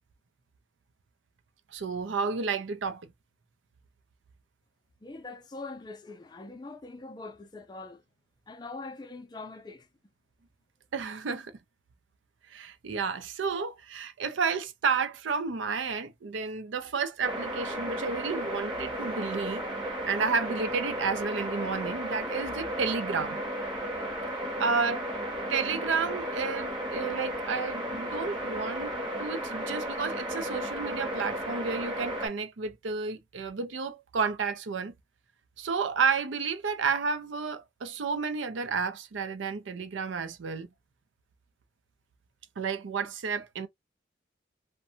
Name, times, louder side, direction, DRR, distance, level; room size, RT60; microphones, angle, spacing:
voice 1, 1.7-3.1 10.9-11.5 12.5-19.6 20.1-23.4 24.6-25.0 25.5-28.9 29.2-34.9 35.6-40.7 42.6-43.7, right 5 dB, 80° right, 0.5 m, -31 dB
voice 2, 5.0-8.0 8.5-9.9, left 3 dB, 20° left, 0.4 m, -43 dB
sound 1, 17.2-32.3, equal, 25° right, 0.8 m, -34 dB
2.6 x 2.2 x 2.6 m
head